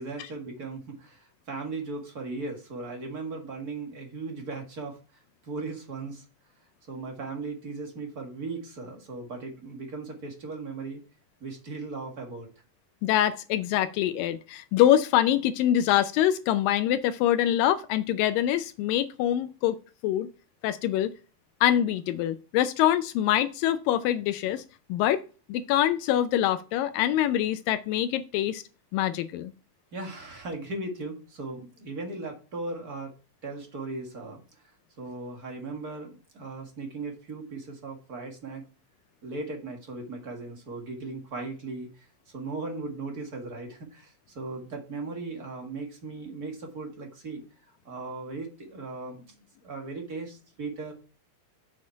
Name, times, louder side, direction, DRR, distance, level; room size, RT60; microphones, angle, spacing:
voice 1, 0.0-5.0 5.4-6.2 6.9-11.0 11.4-12.5 29.9-33.1 33.4-34.7 35.0-38.6 39.2-49.3 49.6-50.9, right 3 dB, 35° right, 1.5 m, -37 dB
voice 2, 13.0-19.8 20.0-20.3 20.6-21.1 21.6-24.6 24.9-25.2 25.5-28.6 28.9-29.5, left 12 dB, 80° left, 2.2 m, -24 dB
7.4 x 6.3 x 4.5 m
omnidirectional pair, 4.1 m